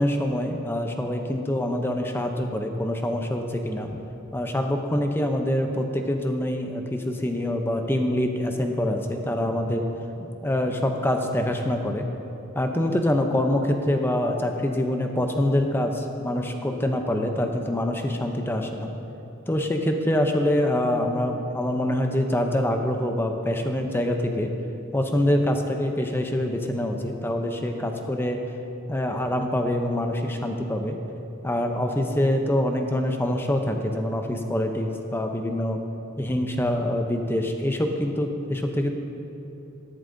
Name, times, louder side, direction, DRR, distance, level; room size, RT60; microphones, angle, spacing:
voice 1, 0.0-4.0 4.3-9.9 10.4-12.1 12.5-18.9 19.5-24.5 24.9-28.4 28.9-31.0 31.4-35.8 36.2-38.9, left 1 dB, 10° left, 4 dB, 0.6 m, -25 dB
13.0 x 11.5 x 2.6 m, 2.9 s
head